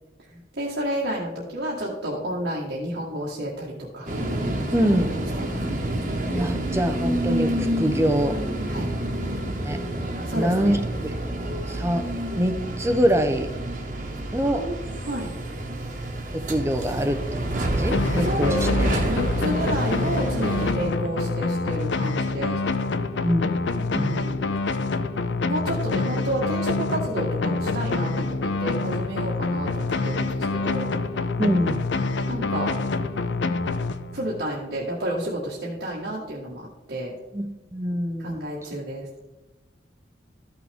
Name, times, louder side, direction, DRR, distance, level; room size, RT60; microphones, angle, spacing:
voice 1, 0.6-4.1 5.4-5.7 8.7-8.9 10.3-10.8 14.5-14.8 15.0-15.3 18.2-22.6 23.8-24.4 25.5-30.9 32.3-32.7 34.1-36.6 36.9-37.1 38.2-39.1, right 1 dB, 75° right, -5 dB, 1.6 m, -30 dB
sound 1, 4.1-20.7, right 1 dB, 45° right, 1.3 m, -28 dB
voice 2, 4.7-5.2 6.4-8.4 9.6-9.8 10.4-11.2 11.7-12.1 12.4-13.5 14.3-14.7 16.3-18.9 23.2-23.4 24.0-24.2 31.4-31.8 37.3-37.5 37.7-38.5, equal, 15° right, 8 dB, 0.6 m, -24 dB
sound 2, 17.9-34.4, left 3 dB, 80° left, 0.6 m, -26 dB
14.0 x 6.1 x 3.5 m, 1.1 s
head